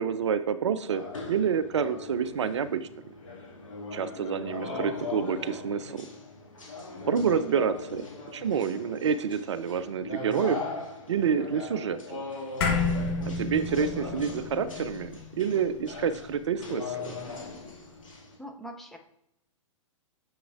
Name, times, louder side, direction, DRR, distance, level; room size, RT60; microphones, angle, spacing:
voice 1, 0.0-2.9 3.9-6.1 7.0-10.6 11.1-12.2 13.4-17.1, right 7 dB, 60° right, 14 dB, 0.4 m, -28 dB
sound 1, 0.9-18.4, left 3 dB, 75° left, 1.9 m, -39 dB
sound 2, 12.6-17.2, left 4 dB, 45° left, 1.2 m, -31 dB
voice 2, 18.4-19.0, right 1 dB, ahead, 1 dB, 0.5 m, -42 dB
7.2 x 5.9 x 2.4 m, 0.81 s
figure-of-eight pair, 110°, 17 cm